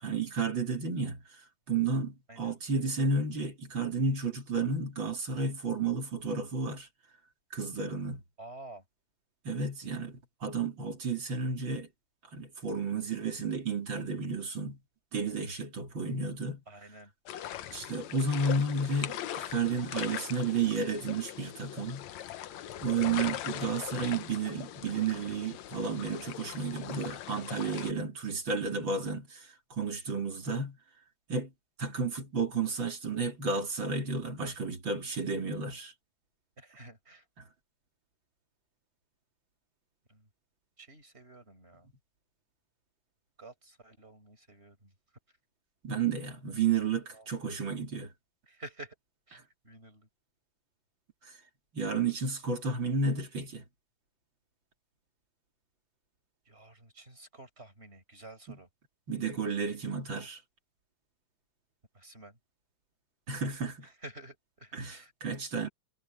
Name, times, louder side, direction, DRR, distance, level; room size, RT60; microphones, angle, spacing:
voice 1, 0.0-1.2 1.7-6.9 7.5-8.2 9.4-11.9 12.3-14.8 15.1-16.6 17.7-22.1 22.8-30.8 31.3-31.5 31.8-35.9 45.8-48.1 51.3-51.4 51.7-53.6 58.5-58.6 59.1-60.4 63.3-63.9 64.7-65.7, right 4 dB, 35° right, 3.5 m, -32 dB
voice 2, 8.4-8.8 16.7-17.1 36.6-37.2 40.1-40.3 40.8-41.9 43.4-44.9 47.1-47.3 48.5-48.9 49.3-50.1 56.5-58.7 61.9-62.4 63.8-65.1, right 2 dB, 15° right, 6.3 m, -50 dB
sound 1, 17.3-27.9, left 12 dB, 65° left, 1.9 m, -41 dB
omnidirectional pair, 4.0 m